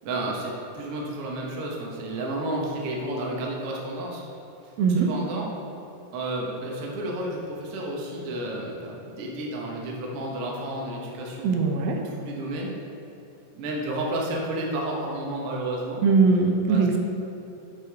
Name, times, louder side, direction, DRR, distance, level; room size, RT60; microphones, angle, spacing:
voice 1, 0.0-4.2 4.6-5.5 6.1-11.6 12.0-12.7 13.5-16.0 16.7-17.0, right 1 dB, 60° right, -2 dB, 1.5 m, -31 dB
voice 2, 4.8-5.1 11.4-12.0 16.0-17.0, right 4 dB, 85° right, 2 dB, 2.5 m, -20 dB
8.9 x 6.5 x 3.5 m, 3.0 s
omnidirectional pair, 4.0 m